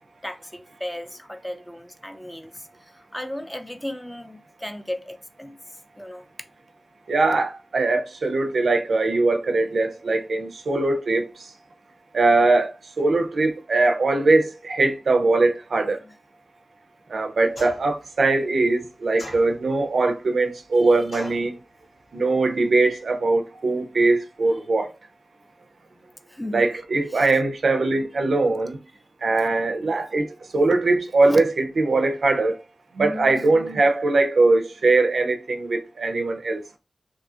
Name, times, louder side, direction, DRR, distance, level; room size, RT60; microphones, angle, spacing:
voice 1, 0.2-5.6 6.0-6.3 16.0-16.2 20.8-21.0 25.9-27.3 31.2-31.4, left 1 dB, 10° left, 0.4 m, -36 dB
voice 2, 7.1-11.3 12.1-12.7 13.0-16.0 17.1-21.6 22.1-24.9 26.5-28.8 29.2-30.3 30.5-32.6 33.0-36.6, right 3 dB, 90° right, 0.4 m, -21 dB
sound 1, 17.6-18.0 19.2-19.9 21.1-21.5, left 1 dB, 85° left, 0.9 m, -39 dB
2.6 x 2.4 x 2.6 m
wide cardioid pair, 65°, 0 cm